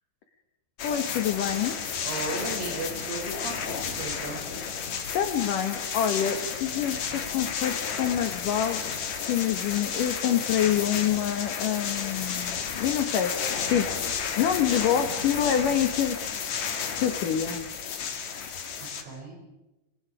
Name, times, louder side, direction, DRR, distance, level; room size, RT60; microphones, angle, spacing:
voice 1, 0.8-1.8 5.1-9.0 9.3-13.9 14.4-16.2 17.0-17.7, left 9 dB, 75° left, 7 dB, 1.9 m, -26 dB
sound 1, 0.8-19.0, left 6 dB, 50° left, 2.4 m, -32 dB
voice 2, 2.0-4.4 18.8-19.4, right 3 dB, 75° right, -1 dB, 9.5 m, -36 dB
27.5 x 25.0 x 4.9 m, 1.0 s
omnidirectional pair, 5.8 m